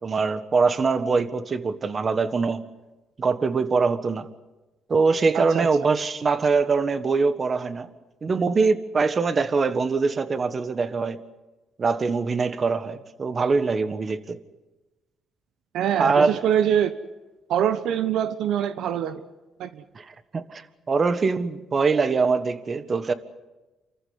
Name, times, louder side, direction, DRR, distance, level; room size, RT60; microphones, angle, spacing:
voice 1, 0.0-2.6 3.2-4.3 4.9-7.9 8.2-11.2 11.8-14.4 16.0-16.4 19.9-23.1, right 4 dB, 40° right, 11 dB, 1.6 m, -23 dB
voice 2, 5.3-5.7 15.7-17.0 17.5-19.2 19.6-19.8, right 9 dB, 80° right, 11 dB, 1.0 m, -24 dB
28.0 x 14.5 x 9.6 m, 1.1 s
cardioid pair, 90°, 0 cm